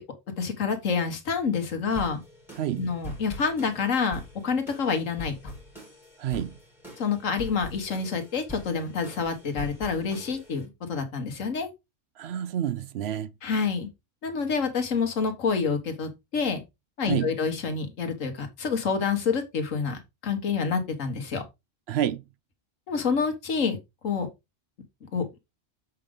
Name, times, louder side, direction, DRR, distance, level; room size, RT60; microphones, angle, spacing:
voice 1, 0.4-2.2 2.8-5.4 7.0-11.7 13.4-13.9 14.2-16.6 17.0-21.4 22.9-23.8 24.0-24.3 25.1-25.4, left 5 dB, 80° left, 1.7 m, -28 dB
sound 1, 1.9-10.6, equal, ahead, 3.5 m, -43 dB
voice 2, 2.6-2.9 6.2-6.6 12.2-13.3 17.1-17.4 21.9-22.2, right 10 dB, 65° right, 0.7 m, -29 dB
7.5 x 5.0 x 3.5 m
omnidirectional pair, 1.3 m